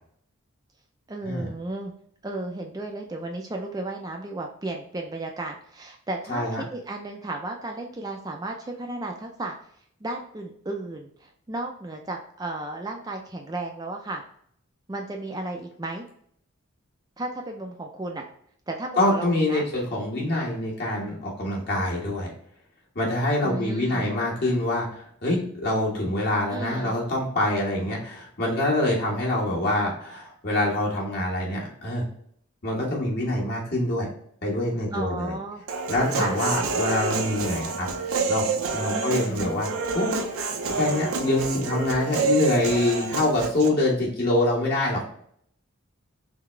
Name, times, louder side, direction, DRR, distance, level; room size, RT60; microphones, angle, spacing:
voice 1, 1.1-1.9 2.2-9.6 10.0-14.2 14.9-16.1 17.2-18.3 18.7-19.7 23.4-24.1 26.5-26.9 34.9-35.6 36.1-36.4 38.9-39.5, right 2 dB, 20° right, 2 dB, 0.4 m, -34 dB
voice 2, 6.3-6.6 19.0-22.3 22.9-24.9 25.2-32.0 32.6-34.1 34.4-35.3 35.9-37.9 38.3-40.1 40.7-45.0, left 1 dB, 50° left, -3 dB, 1.5 m, -25 dB
Human voice, 35.7-43.7, right 4 dB, 85° right, 0.6 m, -28 dB
3.9 x 3.5 x 3.2 m, 0.66 s
head